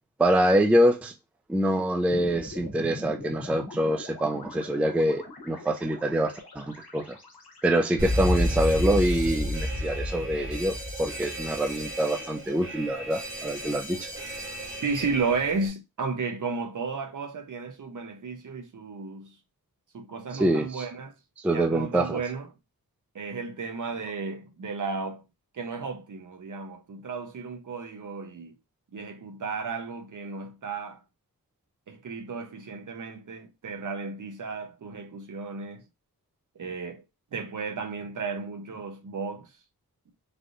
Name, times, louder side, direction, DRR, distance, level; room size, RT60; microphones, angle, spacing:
voice 1, 0.2-1.1 1.5-7.2 7.6-14.1 20.3-20.9 21.4-22.2, right 1 dB, 5° right, 0.3 m, -25 dB
sound 1, 2.1-10.4, left 2 dB, 80° left, 1.0 m, -43 dB
Alarm, 8.0-15.7, left 1 dB, 35° right, 1.0 m, -31 dB
voice 2, 14.8-19.3 19.9-21.1 21.5-22.5 23.1-25.2 25.5-28.5 28.9-31.0 31.9-35.8 36.6-37.0 37.3-39.5, right 4 dB, 55° right, 0.6 m, -33 dB
3.3 x 2.6 x 2.5 m
wide cardioid pair, 65°, 37 cm